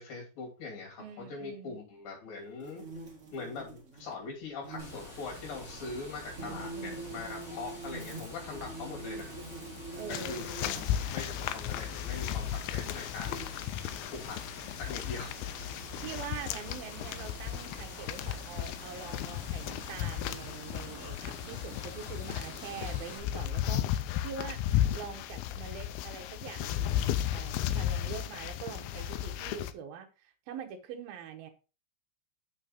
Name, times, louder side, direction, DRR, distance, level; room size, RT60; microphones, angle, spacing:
voice 1, 0.0-2.9 3.3-9.3 10.3-13.5 14.1-14.4 14.8-15.3, left 4 dB, 60° left, 4.5 m, -42 dB
voice 2, 1.0-1.8 6.4-7.6 9.9-10.5 16.0-23.8 24.2-24.6 24.9-31.5, right 7 dB, 75° right, 2.8 m, -44 dB
sound 1, 2.6-4.1 4.4-5.0 6.4-11.4 12.2-12.3 12.9-13.5, right 2 dB, 40° right, 1.1 m, -44 dB
Water, 4.8-23.2, left 1 dB, 25° left, 2.1 m, -47 dB
sound 2, 10.1-29.7, left 11 dB, 80° left, 2.4 m, -35 dB
6.7 x 6.4 x 4.2 m
omnidirectional pair, 4.5 m